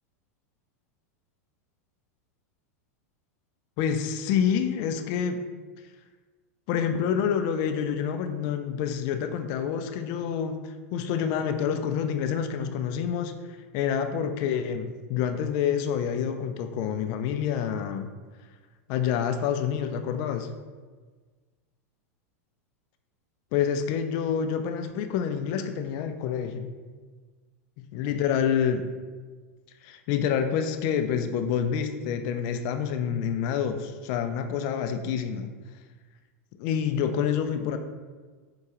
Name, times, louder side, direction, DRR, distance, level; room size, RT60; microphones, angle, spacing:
voice 1, 3.8-5.4 6.7-13.4 13.7-18.1 18.9-20.5 23.5-26.7 27.9-28.9 29.8-35.5 36.6-37.8, left 8 dB, 50° left, 8 dB, 0.3 m, -27 dB
4.7 x 2.2 x 2.8 m, 1.4 s
hypercardioid pair, 110°, 8 cm